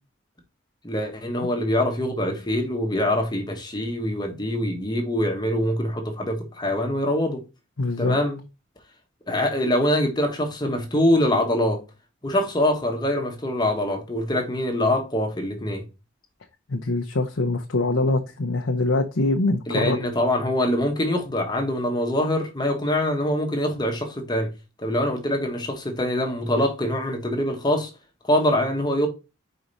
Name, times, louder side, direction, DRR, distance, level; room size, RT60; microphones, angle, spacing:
voice 1, 0.8-7.4 8.0-8.4 9.3-11.8 12.2-15.8 19.7-24.5 24.8-27.9 28.2-29.1, left 1 dB, 20° left, 1.3 m, -24 dB
voice 2, 7.8-8.2 16.7-20.0, left 2 dB, 85° left, 0.8 m, -23 dB
5.0 x 4.7 x 4.0 m
head